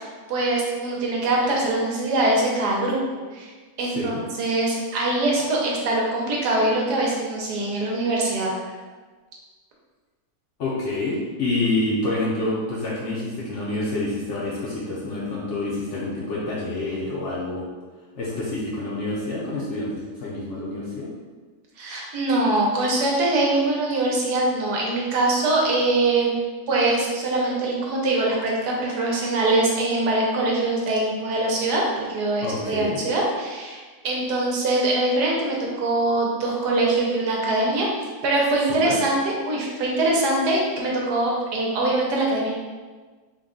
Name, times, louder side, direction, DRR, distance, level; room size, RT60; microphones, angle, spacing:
voice 1, 0.3-3.0 3.3-3.5 3.8-8.5 21.8-26.3 26.7-37.9 38.2-42.5, right 2 dB, 75° right, -2 dB, 1.3 m, -23 dB
voice 2, 3.8-4.2 10.6-17.6 18.1-21.1 32.4-33.0 38.8-39.0, left 2 dB, 60° left, -6 dB, 0.8 m, -27 dB
3.8 x 2.3 x 3.6 m, 1.4 s
omnidirectional pair, 1.8 m